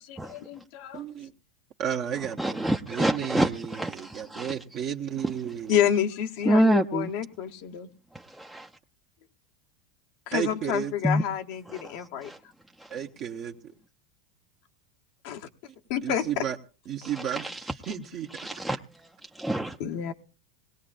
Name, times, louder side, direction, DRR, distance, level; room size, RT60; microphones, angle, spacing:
voice 1, 0.1-1.0 5.7-7.9 10.3-12.3 15.2-15.4 15.9-16.2 19.8-20.1, left 9 dB, 65° left, 4 dB, 0.9 m, -29 dB
voice 2, 0.9-1.3 1.8-5.9 10.3-11.0 12.9-13.7 16.0-16.6 16.9-18.5, right 9 dB, 50° right, 2 dB, 1.1 m, -33 dB
voice 3, 2.4-4.5 6.4-7.1 8.1-8.7 11.0-11.2 11.7-12.4 12.8-12.9 17.3-17.6 18.3-18.8 19.2-19.8, right 1 dB, 5° right, 1 dB, 0.6 m, -27 dB
20.0 x 17.5 x 2.5 m, 0.34 s
hypercardioid pair, 95°, 0 cm